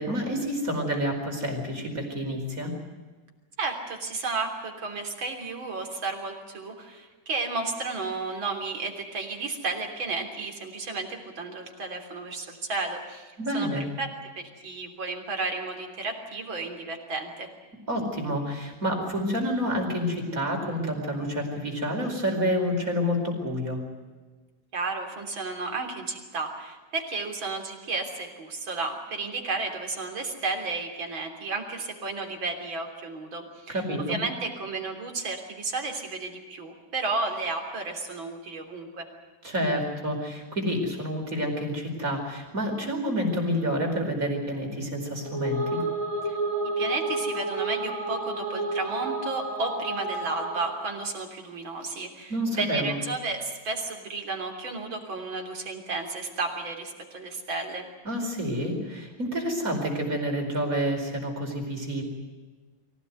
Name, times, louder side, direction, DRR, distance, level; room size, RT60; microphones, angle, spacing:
voice 1, 0.0-2.7 13.4-13.8 17.9-23.8 33.7-34.2 39.4-45.8 52.3-53.0 58.1-62.0, equal, 40° right, 2 dB, 5.3 m, -28 dB
voice 2, 3.6-17.5 24.7-39.1 46.2-46.4 46.8-57.8, right 3 dB, 70° right, 3 dB, 4.2 m, -33 dB
sound 1, 45.2-50.9, right 2 dB, 10° left, 5.3 m, -30 dB
24.0 x 17.0 x 9.4 m, 1.3 s
omnidirectional pair, 2.2 m